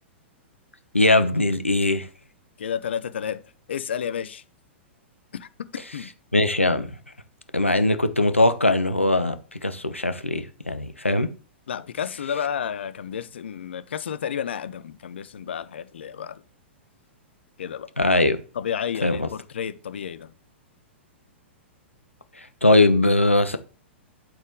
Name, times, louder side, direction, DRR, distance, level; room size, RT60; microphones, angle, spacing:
voice 1, 0.9-2.1 6.3-6.9 7.5-9.4 9.6-11.3 18.0-18.4 19.0-19.3 22.6-23.6, left 2 dB, 90° left, 0.9 m, -20 dB
voice 2, 2.6-3.4 3.7-4.4 5.3-6.1 11.7-16.4 17.6-17.9 18.5-20.3, left 8 dB, 65° left, 0.7 m, -31 dB
11.5 x 4.4 x 3.6 m
figure-of-eight pair, 105°, 7 cm